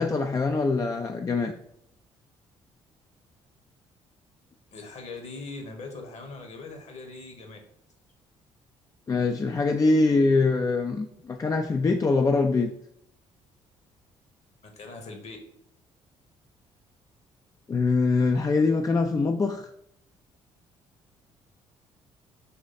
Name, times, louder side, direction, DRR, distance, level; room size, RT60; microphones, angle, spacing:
voice 1, 0.0-1.5 9.1-12.7 17.7-19.7, left 3 dB, 25° left, 5 dB, 0.4 m, -23 dB
voice 2, 4.7-7.6 14.6-15.4, left 3 dB, 45° left, 4 dB, 1.1 m, -41 dB
4.0 x 3.1 x 4.0 m, 0.71 s
figure-of-eight pair, 45°, 16 cm